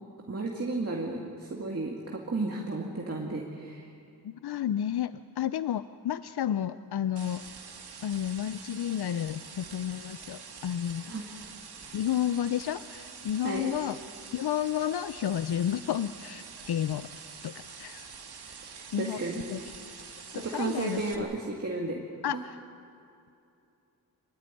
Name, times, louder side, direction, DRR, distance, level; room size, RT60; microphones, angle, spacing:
voice 1, 0.3-3.9 11.1-11.3 13.4-13.8 18.7-19.4 20.3-22.0 22.3-22.4, right 3 dB, 40° right, -1 dB, 2.2 m, -33 dB
voice 2, 4.2-7.4 8.0-11.1 11.9-14.0 14.3-17.1 17.4-18.1 18.5-18.6 18.9-19.2 19.5-19.6 20.3-21.2 22.2-22.6, left 10 dB, 80° left, 13 dB, 0.6 m, -31 dB
sound 1, 7.2-21.2, right 5 dB, 80° right, 2.0 m, -46 dB
26.0 x 15.0 x 9.9 m, 2.7 s
wide cardioid pair, 100°, 38 cm